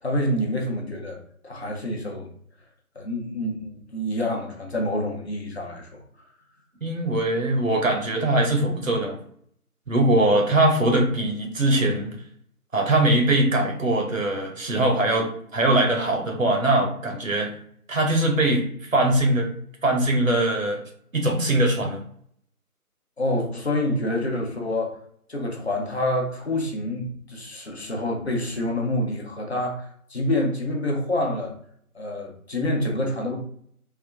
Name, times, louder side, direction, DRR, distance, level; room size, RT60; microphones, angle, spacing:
voice 1, 0.0-2.3 2.9-6.0 23.2-25.0 25.3-31.5 31.9-33.4, left 1 dB, 45° left, 0 dB, 0.9 m, -27 dB
voice 2, 6.8-9.2 9.9-12.1 12.7-17.5 17.9-19.5 19.8-20.8 21.1-22.0, right 1 dB, 60° right, 2 dB, 1.1 m, -21 dB
3.6 x 2.3 x 3.4 m, 0.62 s
figure-of-eight pair, 160°, 45 cm